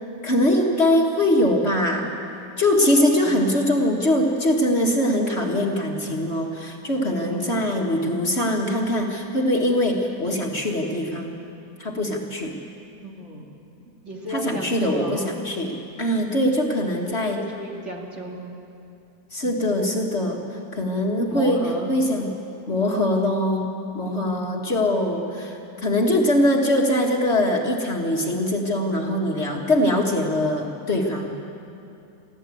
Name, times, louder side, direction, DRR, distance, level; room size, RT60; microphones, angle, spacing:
voice 1, 0.2-2.1 2.6-11.4 11.8-12.5 14.3-17.4 19.3-22.3 22.7-23.7 23.9-31.3, left 1 dB, 40° left, 0 dB, 2.0 m, -22 dB
voice 2, 7.2-7.6 13.0-13.5 14.0-15.4 16.9-18.4 19.4-19.5 21.3-21.9 24.0-24.2, right 1 dB, 45° right, -1 dB, 2.8 m, -35 dB
23.5 x 15.0 x 8.5 m, 2.7 s
omnidirectional pair, 1.7 m